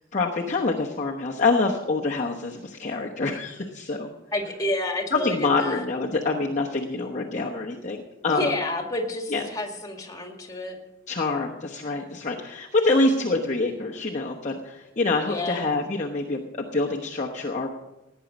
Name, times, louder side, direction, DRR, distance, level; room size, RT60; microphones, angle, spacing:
voice 1, 0.1-4.1 5.1-8.5 9.3-9.4 11.1-17.7, left 3 dB, 35° left, -1 dB, 1.1 m, -26 dB
voice 2, 4.3-5.8 8.3-10.8 15.3-15.7, left 1 dB, 20° left, 3 dB, 2.1 m, -29 dB
17.5 x 9.4 x 5.3 m, 0.96 s
head